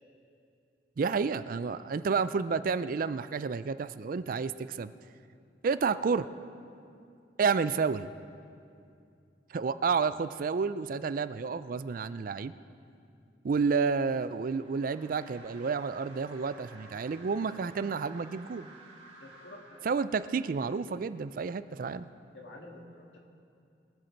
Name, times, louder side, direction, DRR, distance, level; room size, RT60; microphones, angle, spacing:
voice 1, 1.0-4.9 5.6-6.3 7.4-8.1 9.5-12.5 13.4-18.7 19.8-22.1, right 5 dB, 50° right, 14 dB, 0.4 m, -30 dB
sound 1, 13.8-20.7, right 2 dB, 35° right, 2.7 m, -54 dB
voice 2, 19.2-19.9 22.3-23.2, left 2 dB, 85° left, 1 dB, 1.9 m, -49 dB
23.0 x 8.0 x 4.5 m, 2.5 s
head